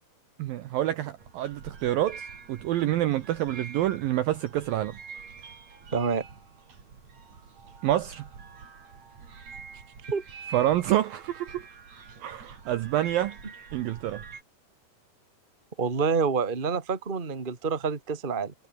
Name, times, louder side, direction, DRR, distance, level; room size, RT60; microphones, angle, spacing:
voice 1, 0.4-5.0 7.8-8.2 10.5-11.7 12.2-13.4 13.7-14.2, right 13 dB, 75° right, 2.3 m, -27 dB
sound 1, 1.2-14.4, right 5 dB, 40° right, 4.7 m, -46 dB
voice 2, 5.9-6.3 10.1-10.2 15.8-18.5, right 5 dB, 20° right, 1.4 m, -27 dB
omnidirectional pair, 5.0 m